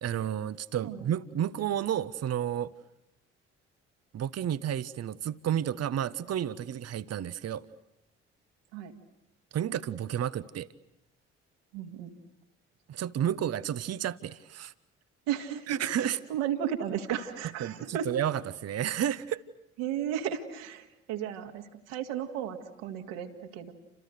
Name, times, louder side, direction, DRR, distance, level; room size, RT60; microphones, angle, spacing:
voice 1, 0.0-2.7 4.1-7.7 9.5-10.7 12.9-14.7 15.7-16.2 17.6-19.4, right 10 dB, 45° right, 15 dB, 1.0 m, -31 dB
voice 2, 11.7-12.1 15.3-18.1 19.8-23.7, right 9 dB, 70° right, 4 dB, 2.3 m, -34 dB
29.5 x 27.0 x 6.7 m, 0.86 s
figure-of-eight pair, 45°, 36 cm